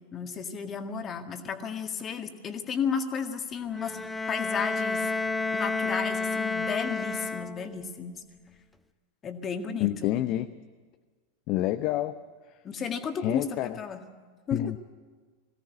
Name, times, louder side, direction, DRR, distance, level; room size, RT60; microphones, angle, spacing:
voice 1, 0.0-4.0 4.3-5.1 5.5-8.2 9.2-10.1 12.6-14.0 14.5-14.7, left 6 dB, 25° left, 6 dB, 1.8 m, -33 dB
Bowed string instrument, 3.7-7.8, left 3 dB, 5° left, 0.9 m, -30 dB
voice 2, 9.8-10.5 11.5-12.2 13.2-13.8 14.5-14.8, left 14 dB, 40° left, 10 dB, 0.7 m, -28 dB
21.5 x 17.0 x 9.4 m, 1.5 s
figure-of-eight pair, 90°, 0 cm